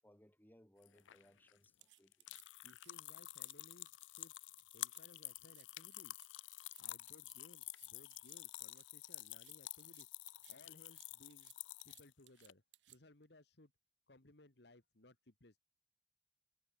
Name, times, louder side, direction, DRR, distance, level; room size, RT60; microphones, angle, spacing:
voice 1, 0.0-2.3, equal, 10° left, 5.6 m, -67 dB
sound 1, 0.8-12.5, left 17 dB, 90° left, 0.5 m, -50 dB
sound 2, 1.8-2.9 3.3-3.6 3.9-4.3 4.6-5.0 5.3-5.7 5.9-8.9 9.2-10.6 10.9-13.2, right 16 dB, 75° right, 1.1 m, -65 dB
voice 2, 2.6-6.3 6.8-11.5 11.8-13.7 14.1-15.6, left 2 dB, 60° left, 1.8 m, -64 dB
head